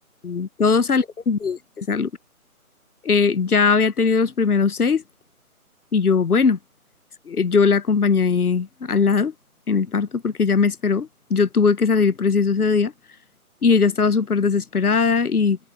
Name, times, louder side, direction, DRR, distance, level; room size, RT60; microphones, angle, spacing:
voice 1, 0.2-2.1 3.0-5.0 5.9-6.6 7.3-9.3 9.7-12.9 13.6-15.6, left 5 dB, 90° left, 1.1 m, -19 dB
figure-of-eight pair, 165°, 44 cm